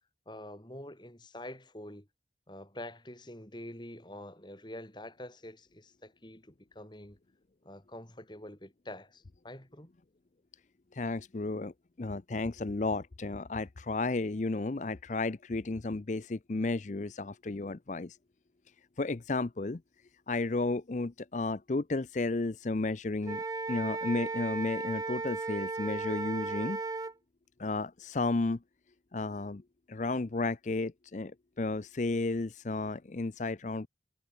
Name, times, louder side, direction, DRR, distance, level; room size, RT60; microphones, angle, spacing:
voice 1, 0.3-2.1 2.5-7.2 7.6-9.9, left 1 dB, 25° left, 5.2 m, -46 dB
voice 2, 10.9-11.7 12.0-18.2 19.0-19.8 20.3-23.4 23.7-26.8 27.6-28.6 29.1-29.6 29.9-33.9, left 3 dB, 40° left, 0.6 m, -33 dB
Wind instrument woodwind instrument, 23.2-27.1, right 3 dB, 20° right, 0.3 m, -35 dB
head